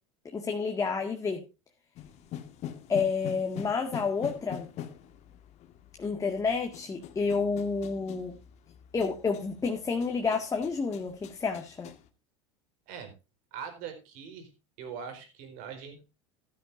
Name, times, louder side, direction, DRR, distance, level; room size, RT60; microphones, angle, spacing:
voice 1, 0.3-1.4 2.9-4.7 6.0-8.3 8.9-11.9, left 5 dB, 20° left, 2 dB, 2.0 m, -30 dB
sound 1, 2.0-12.1, left 10 dB, 45° left, 1.8 m, -44 dB
voice 2, 13.5-14.5 14.8-16.0, right 7 dB, 60° right, 7 dB, 4.6 m, -42 dB
14.0 x 12.5 x 2.6 m, 0.29 s
hypercardioid pair, 95°, 15 cm